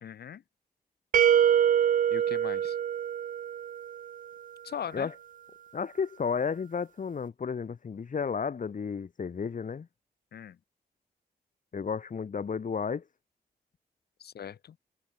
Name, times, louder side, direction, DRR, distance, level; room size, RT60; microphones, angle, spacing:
voice 1, 0.0-0.4 2.1-2.8 4.6-5.1 10.3-10.6 14.2-14.8, left 8 dB, 85° left, 2.4 m, -40 dB
sound 1, 1.1-4.0, right 9 dB, 55° right, 0.4 m, -24 dB
voice 2, 5.7-9.9 11.7-13.0, left 6 dB, 55° left, 2.2 m, -32 dB
cardioid pair, 85°, 16 cm